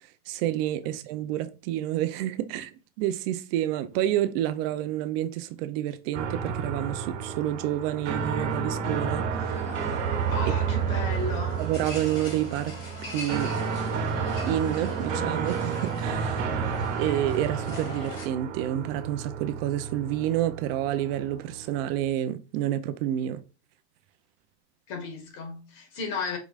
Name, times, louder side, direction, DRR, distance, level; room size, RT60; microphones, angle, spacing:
voice 1, 0.3-9.6 11.6-12.8 13.1-13.6 14.5-16.4 17.0-23.4, right 12 dB, 55° right, 0.6 m, -29 dB
sound 1, 6.1-22.1, right 6 dB, 80° right, 1.2 m, -31 dB
sound 2, 9.4-18.3, left 2 dB, 35° left, 2.1 m, -41 dB
voice 2, 10.3-11.7 24.9-26.4, left 4 dB, 55° left, 1.6 m, -34 dB
4.9 x 3.1 x 2.4 m
supercardioid pair, 115°, 35 cm